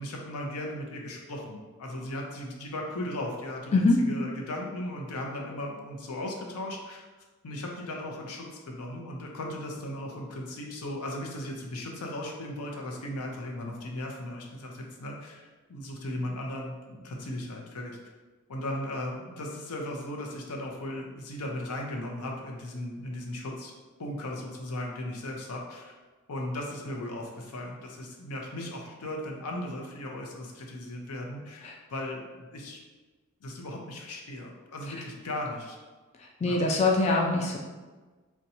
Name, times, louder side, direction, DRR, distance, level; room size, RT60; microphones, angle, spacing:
voice 1, 0.0-7.1 7.4-18.0 18.5-23.7 24.0-25.9 26.3-32.8 33.4-35.8 36.4-36.6, left 1 dB, 90° left, 0 dB, 0.6 m, -37 dB
voice 2, 36.2-37.6, left 2 dB, 30° left, 0 dB, 0.3 m, -24 dB
2.7 x 2.2 x 4.0 m, 1.3 s
head